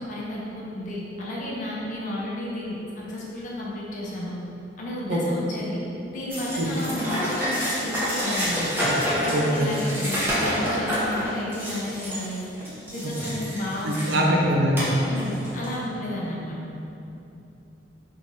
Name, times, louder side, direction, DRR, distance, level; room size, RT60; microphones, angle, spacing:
voice 1, 0.0-4.4 4.8-5.8 6.1-8.8 9.2-12.4 12.9-14.4 15.1-16.6, left 1 dB, 45° left, -5 dB, 0.6 m, -32 dB
sound 1, 6.3-14.3 14.7-15.7, equal, 10° right, 0.7 m, -28 dB
voice 2, 9.3-9.7 13.8-14.8, right 1 dB, 75° right, -1 dB, 0.5 m, -22 dB
3.7 x 3.0 x 2.6 m, 2.8 s
head